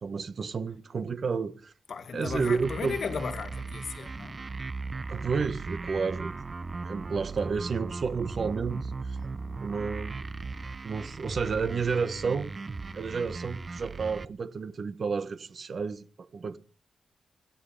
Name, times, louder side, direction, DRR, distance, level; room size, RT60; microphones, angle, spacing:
voice 1, 0.0-1.7 2.1-2.9 5.1-6.3 6.8-9.3 9.6-10.3 10.8-12.5 12.9-16.6, right 5 dB, 50° right, 1.4 m, -31 dB
voice 2, 1.9-4.4, left 5 dB, 60° left, 2.1 m, -35 dB
sound 1, 2.3-14.3, right 3 dB, 35° right, 0.8 m, -37 dB
18.0 x 14.5 x 5.1 m
cardioid pair, 90°, 0 cm